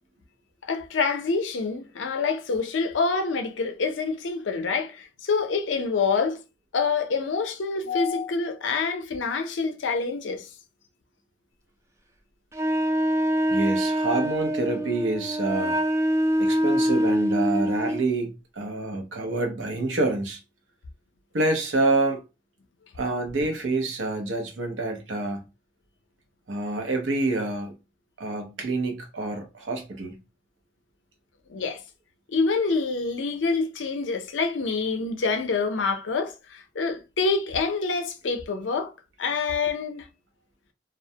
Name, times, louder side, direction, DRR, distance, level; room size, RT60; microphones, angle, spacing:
voice 1, 0.6-6.4 6.7-10.5 31.5-31.8 32.3-38.9 39.2-40.0, left 4 dB, 75° left, 0.5 m, -26 dB
Wind instrument woodwind instrument, 12.5-18.1, equal, 15° right, 0.3 m, -24 dB
voice 2, 13.5-15.8 16.4-20.4 21.3-22.2 22.9-25.4 26.5-27.7 28.2-30.2, right 2 dB, 80° right, 0.7 m, -27 dB
2.3 x 2.1 x 2.7 m
head